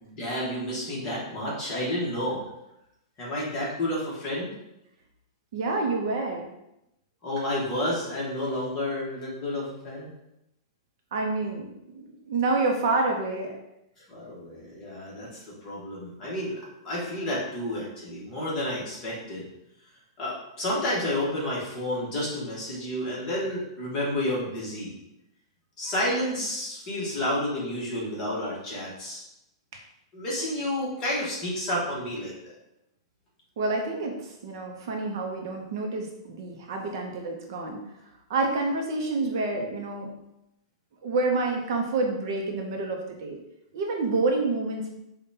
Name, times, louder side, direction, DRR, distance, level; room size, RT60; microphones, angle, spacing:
voice 1, 0.0-2.5 3.2-4.5 7.2-10.1 14.0-19.5 20.2-25.0 25.8-29.2 30.1-32.5, left 1 dB, 20° left, -6 dB, 1.0 m, -30 dB
voice 2, 5.5-6.5 11.1-11.7 11.9-13.5 29.7-29.8 33.6-37.8 38.3-40.1 41.0-43.4 43.7-44.9, right 3 dB, 45° right, 1 dB, 0.5 m, -28 dB
5.2 x 2.1 x 2.7 m, 0.86 s
supercardioid pair, 175°, 3 cm